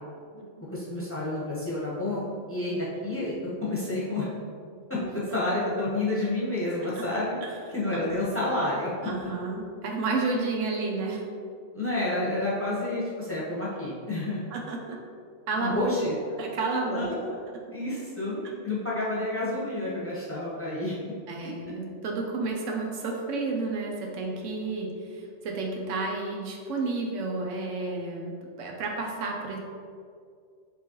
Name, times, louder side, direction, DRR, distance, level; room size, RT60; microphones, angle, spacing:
voice 1, 0.7-2.2 2.5-3.3 3.6-4.3 4.9-7.4 7.7-8.9 11.7-14.4 15.6-16.1 16.9-17.4 17.7-20.9, left 2 dB, 10° left, -7 dB, 0.9 m, -29 dB
voice 2, 9.0-11.2 14.5-15.0 15.5-15.9 16.4-17.1 21.3-29.6, right 3 dB, 80° right, 0 dB, 1.0 m, -31 dB
5.1 x 3.2 x 3.0 m, 2.2 s
omnidirectional pair, 1.3 m